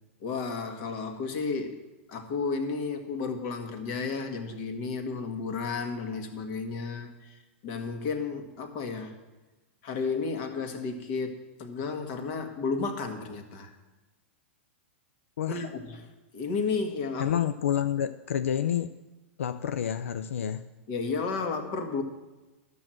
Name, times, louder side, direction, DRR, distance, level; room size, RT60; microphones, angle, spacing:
voice 1, 0.2-1.8 2.1-9.1 9.8-13.7 15.5-16.1 16.3-17.4 20.9-22.0, left 4 dB, 50° left, 6 dB, 1.8 m, -32 dB
voice 2, 15.4-15.7 17.2-18.9 19.4-20.7, left 9 dB, 90° left, 11 dB, 0.4 m, -29 dB
12.0 x 6.2 x 7.7 m, 1.1 s
hypercardioid pair, 130°, 7 cm